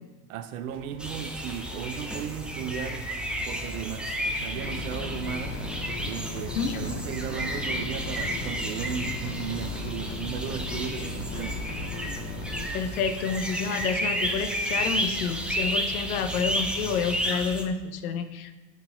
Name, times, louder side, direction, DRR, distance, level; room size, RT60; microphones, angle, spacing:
voice 1, 0.3-3.0 3.5-11.9, right 8 dB, 75° right, 9 dB, 0.7 m, -36 dB
sound 1, 0.7-17.2, right 5 dB, 50° right, 0.9 m, -46 dB
sound 2, 1.0-17.6, equal, ahead, 0.6 m, -32 dB
sound 3, 4.6-12.7, left 3 dB, 25° left, 0.8 m, -36 dB
voice 2, 12.7-18.6, left 6 dB, 90° left, 9 dB, 0.8 m, -29 dB
5.8 x 4.7 x 5.6 m, 1.2 s
supercardioid pair, 110°, 43 cm